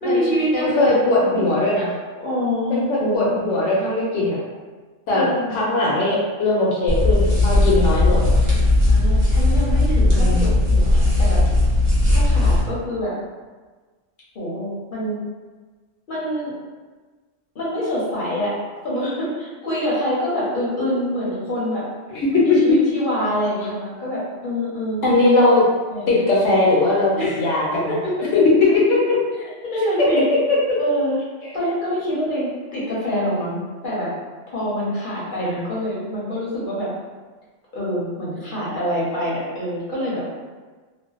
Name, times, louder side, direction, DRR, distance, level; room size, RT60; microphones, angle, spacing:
voice 1, 0.0-0.9 1.3-1.5 2.2-3.4 5.1-5.6 8.5-11.5 12.1-13.1 14.3-15.2 16.1-16.5 17.5-18.5 18.8-21.9 22.3-25.0 25.9-26.2 27.2-27.4 27.9-28.3 29.6-30.3 30.8-31.2 31.5-33.6 33.8-34.1 34.5-36.9 37.7-40.3, equal, 50° left, -8 dB, 0.7 m, -25 dB
voice 2, 0.5-1.9 2.7-4.4 5.1-8.4 10.2-10.6 22.1-22.8 25.0-25.6 26.1-27.1 27.4-28.0 28.3-28.4 28.9-29.2, left 2 dB, 75° left, -5 dB, 0.9 m, -19 dB
sound 1, 6.9-12.6, left 2 dB, 40° right, 0.5 m, -17 dB
2.5 x 2.1 x 2.3 m, 1.4 s
omnidirectional pair, 1.3 m